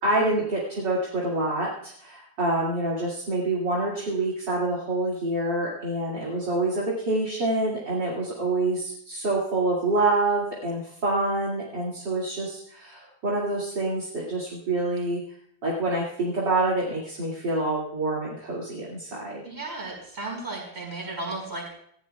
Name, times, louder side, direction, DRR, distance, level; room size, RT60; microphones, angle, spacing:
voice 1, 0.0-15.2 15.6-19.4, right 2 dB, 35° right, -5 dB, 2.3 m, -27 dB
voice 2, 19.4-21.7, right 2 dB, 15° right, -1 dB, 4.7 m, -34 dB
19.5 x 15.5 x 2.3 m, 0.70 s
omnidirectional pair, 4.5 m